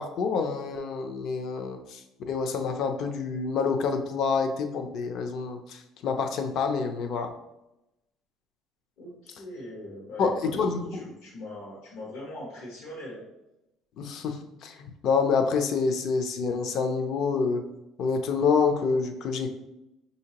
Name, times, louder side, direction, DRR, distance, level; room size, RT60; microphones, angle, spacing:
voice 1, 0.0-2.0 2.3-7.3 10.2-11.1 14.0-17.6 18.0-19.5, left 5 dB, 55° left, 6 dB, 0.5 m, -27 dB
voice 2, 9.0-13.2, left 1 dB, 85° left, -6 dB, 1.2 m, -41 dB
5.6 x 2.8 x 2.9 m, 0.91 s
cardioid pair, 140°, 0 cm